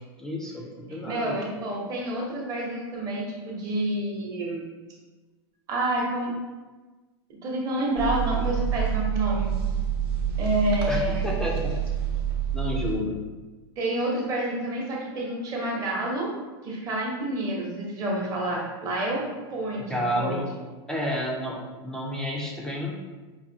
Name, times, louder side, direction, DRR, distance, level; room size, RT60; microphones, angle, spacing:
voice 1, 0.2-1.3 10.9-11.8 12.5-13.1 19.9-20.5 20.9-22.9, left 1 dB, 5° left, -3 dB, 0.3 m, -30 dB
voice 2, 0.9-4.6 5.7-6.3 7.4-9.5 10.4-11.2 13.8-16.3 16.6-19.2 19.5-19.8 20.2-20.4, right 1 dB, 25° right, -2 dB, 0.8 m, -28 dB
sound 1, 8.0-13.0, right 8 dB, 60° right, 0.9 m, -27 dB
4.8 x 2.6 x 2.6 m, 1.3 s
supercardioid pair, 155°, 14 cm